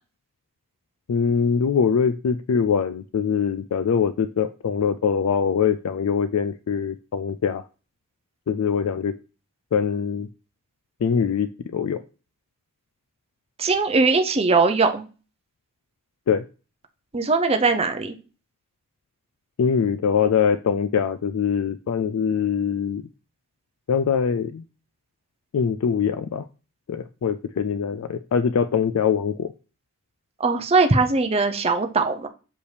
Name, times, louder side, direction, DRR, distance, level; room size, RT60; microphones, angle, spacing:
voice 1, 1.1-7.6 8.5-9.1 9.7-10.3 11.0-12.0 16.3-16.4 19.6-23.0 23.9-24.6 25.5-26.5 26.9-29.5, left 6 dB, 75° left, 11 dB, 0.4 m, -23 dB
voice 2, 13.6-15.0 17.1-18.2 30.4-32.3, right 3 dB, 25° right, 6 dB, 0.6 m, -20 dB
6.7 x 5.2 x 3.3 m, 0.35 s
head